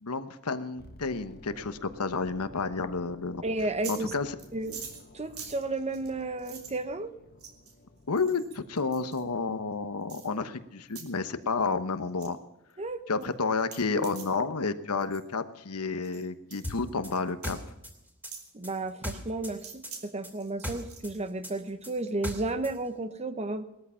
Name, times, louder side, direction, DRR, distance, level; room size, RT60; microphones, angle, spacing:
voice 1, 0.0-3.4 3.9-4.3 8.1-12.4 13.1-17.6, left 4 dB, 85° left, 10 dB, 1.1 m, -31 dB
sound 1, 0.8-10.8 11.0-11.2, left 1 dB, 45° left, 1.4 m, -54 dB
voice 2, 3.4-4.1 4.5-4.8 5.1-7.1 12.8-13.3 18.5-23.6, right 2 dB, 30° right, 11 dB, 0.9 m, -33 dB
sound 2, 3.6-4.0 4.4-6.8 7.4-7.7 8.1-9.2 10.1-10.3 10.9-11.1 11.4-11.7 12.0-12.3 12.7-12.8 13.2-13.3 13.6-14.3 15.0-15.2 16.0-16.2 16.5-16.6 17.4-17.6 18.3-18.5 19.6-20.0 20.4-21.2, right 6 dB, 70° right, 3.3 m, -45 dB
sound 3, 16.6-19.6 19.8-22.7, left 1 dB, 10° right, 2.7 m, -38 dB
19.0 x 13.0 x 5.7 m, 0.91 s
head